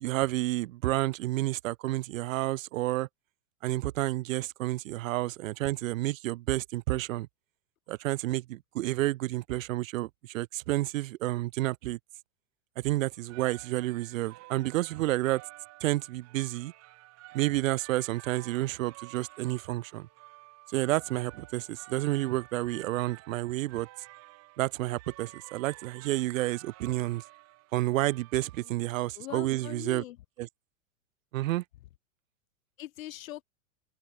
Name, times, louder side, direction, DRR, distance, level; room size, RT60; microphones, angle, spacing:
voice 1, 0.0-3.1 3.6-7.3 7.9-12.0 12.8-15.4 15.8-16.7 17.3-20.1 20.7-23.9 24.6-27.2 27.7-30.0 30.4-30.5 31.3-31.6, right 17 dB, 75° right, 0.5 m, -30 dB
sound 1, 13.1-29.0, right 19 dB, 40° right, 4.1 m, -52 dB
voice 2, 29.1-30.2 32.8-33.4, left 14 dB, 85° left, 0.6 m, -42 dB
open air
hypercardioid pair, 120°, 40 cm